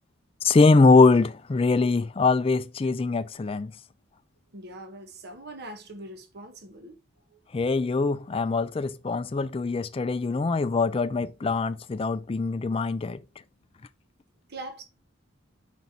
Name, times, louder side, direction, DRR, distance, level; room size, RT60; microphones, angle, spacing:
voice 1, 0.4-3.7 7.5-13.2, left 3 dB, 25° left, 0.4 m, -22 dB
voice 2, 4.5-7.0 7.3-7.4 14.5-14.8, right 1 dB, 50° right, 1.0 m, -42 dB
5.2 x 4.1 x 5.9 m
head